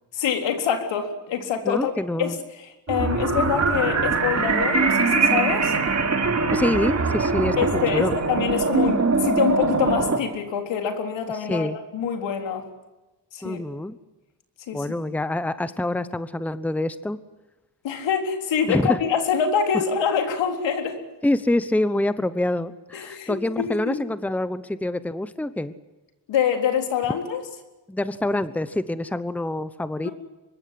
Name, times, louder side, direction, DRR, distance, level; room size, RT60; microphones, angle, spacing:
voice 1, 0.1-1.9 2.2-5.8 7.6-12.6 13.3-13.6 14.7-14.8 17.8-21.0 22.9-24.0 26.3-27.4 30.0-30.1, left 7 dB, 85° left, 5 dB, 3.9 m, -25 dB
voice 2, 1.6-2.4 6.5-8.1 11.2-11.8 13.4-14.0 14.7-17.2 18.7-19.0 21.2-25.7 27.9-30.1, left 1 dB, 5° left, 13 dB, 1.0 m, -26 dB
sound 1, 2.9-10.2, right 4 dB, 35° right, 3.0 m, -22 dB
24.5 x 21.5 x 7.8 m, 1.1 s
cardioid pair, 105°, 43 cm